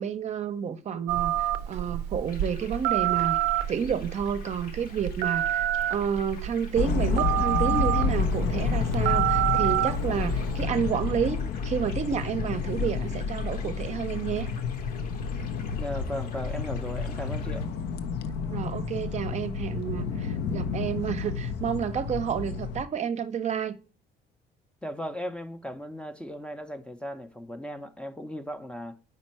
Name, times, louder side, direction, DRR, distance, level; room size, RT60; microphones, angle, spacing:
voice 1, 0.0-3.4 3.7-14.5 18.5-23.8, right 7 dB, 40° right, 0.6 m, -30 dB
Telephone, 1.1-10.6, right 13 dB, 85° right, 0.4 m, -28 dB
sound 1, 2.3-17.7, left 5 dB, 55° left, 0.9 m, -50 dB
sound 2, 6.8-22.8, left 5 dB, 75° left, 0.6 m, -30 dB
voice 2, 15.8-17.7 24.8-28.9, equal, 5° left, 0.5 m, -37 dB
5.2 x 4.3 x 4.2 m
cardioid pair, 110°, 17 cm